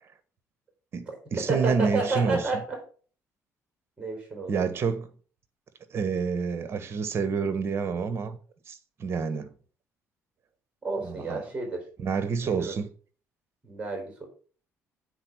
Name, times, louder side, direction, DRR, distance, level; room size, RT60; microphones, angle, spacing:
voice 1, 0.9-2.4 4.5-5.1 5.9-8.4 8.7-9.5 11.0-11.4 12.0-12.8, right 5 dB, 45° right, 1.2 m, -28 dB
voice 2, 1.5-2.8 4.0-4.5 10.8-11.8 12.4-12.8 13.6-14.3, right 3 dB, 20° right, 4.4 m, -30 dB
8.8 x 4.4 x 6.1 m
cardioid pair, 110°, 6 cm